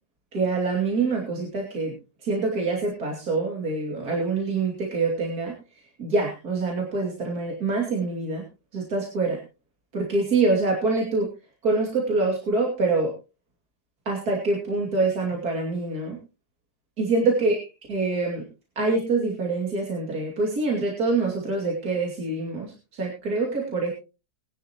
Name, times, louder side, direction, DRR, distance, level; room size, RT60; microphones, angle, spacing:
voice 1, 0.3-1.9 2.2-5.5 6.0-8.4 8.7-9.4 9.9-11.3 11.6-13.1 14.1-16.2 17.0-17.6 17.9-18.4 18.8-23.9, right 3 dB, 70° right, -1 dB, 3.2 m, -25 dB
21.0 x 10.0 x 3.0 m, 0.30 s
omnidirectional pair, 1.7 m